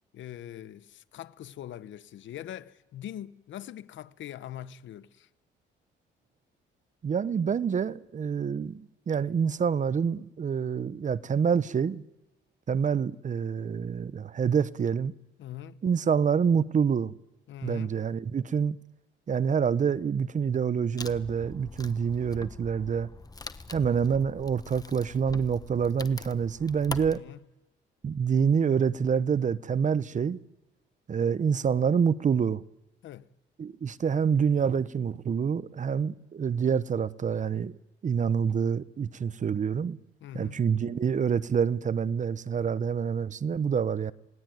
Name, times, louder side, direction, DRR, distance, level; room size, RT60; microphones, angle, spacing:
voice 1, 0.1-5.3 15.4-15.8 17.5-17.9 27.1-27.4 33.0-33.3 40.2-40.6, left 11 dB, 70° left, 1.0 m, -42 dB
voice 2, 7.0-12.0 12.7-15.1 15.8-17.1 17.6-18.8 19.3-23.1 23.7-27.2 28.0-30.4 31.1-32.6 33.6-37.7 38.0-40.0 40.3-44.1, right 7 dB, 40° right, 0.8 m, -27 dB
Wood, 21.0-27.2, left 3 dB, 20° left, 1.1 m, -43 dB
28.5 x 18.5 x 9.3 m
cardioid pair, 90°, 20 cm